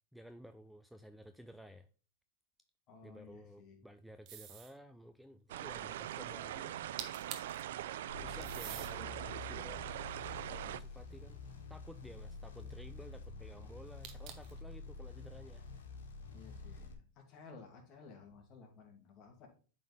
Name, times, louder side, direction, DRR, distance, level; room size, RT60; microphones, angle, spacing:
voice 1, 0.1-1.9 3.0-6.8 8.1-9.9 10.5-11.4 11.7-15.6, equal, ahead, 8 dB, 0.5 m, -54 dB
voice 2, 2.9-3.9 16.3-19.5, left 5 dB, 40° left, 2 dB, 2.3 m, -56 dB
sound 1, 4.3-4.8 6.7-6.8 7.0-7.6 8.4-8.9 9.6-11.1 14.0-14.6, right 10 dB, 45° right, 1.1 m, -47 dB
sound 2, 5.5-10.8, right 12 dB, 75° right, 0.4 m, -42 dB
sound 3, 8.1-16.9, left 3 dB, 85° left, 1.7 m, -48 dB
8.4 x 4.2 x 3.4 m, 0.38 s
hypercardioid pair, 115°, 0 cm